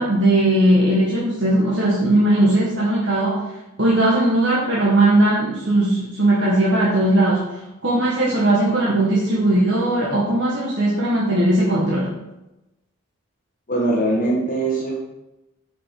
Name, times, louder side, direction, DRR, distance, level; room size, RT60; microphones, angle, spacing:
voice 1, 0.0-3.4 3.8-12.1, right 1 dB, 60° right, -6 dB, 1.4 m, -18 dB
voice 2, 13.7-14.9, right 2 dB, 40° left, -4 dB, 1.4 m, -21 dB
6.6 x 5.3 x 4.7 m, 0.95 s
head